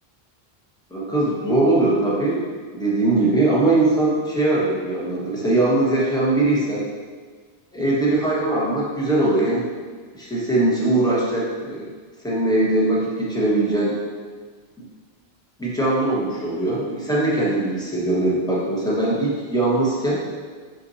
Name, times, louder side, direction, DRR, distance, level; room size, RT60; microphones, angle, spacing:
voice 1, 0.9-2.4 2.7-6.8 7.7-9.7 10.1-11.9 12.2-13.9 15.6-20.2, right 2 dB, 5° left, -7 dB, 1.4 m, -21 dB
6.4 x 5.9 x 2.8 m, 1.5 s
omnidirectional pair, 1.0 m